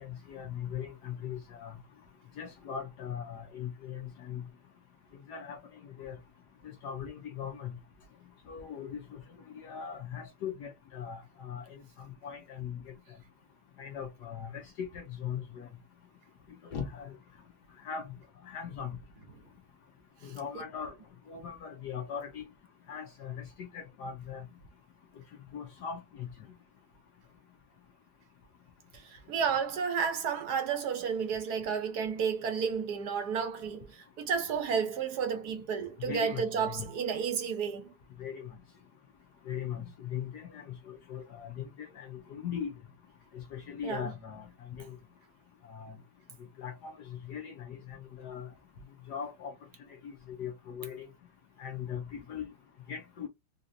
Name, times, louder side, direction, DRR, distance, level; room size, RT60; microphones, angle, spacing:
voice 1, 0.0-1.7 2.4-4.4 5.3-5.6 6.0-6.1 6.8-7.7 8.5-9.2 9.6-11.6 12.2-12.8 13.8-15.7 16.7-17.1 17.8-18.1 18.5-18.9 20.2-20.9 21.3-22.4 22.9-23.4 23.7-24.4 25.5-26.3 36.1-36.9 38.2-38.5 39.5-39.8 40.1-42.7 43.3-44.5 44.8-44.9 45.7-45.9 46.6-46.9 47.3-48.5 49.1-49.5 50.0-50.1 50.4-51.1 51.6-52.5 52.9-53.3, left 8 dB, 65° left, 1.0 m, -39 dB
voice 2, 28.9-37.9 43.8-44.1, right 6 dB, 60° right, 1.1 m, -32 dB
4.0 x 2.4 x 2.6 m
omnidirectional pair, 2.4 m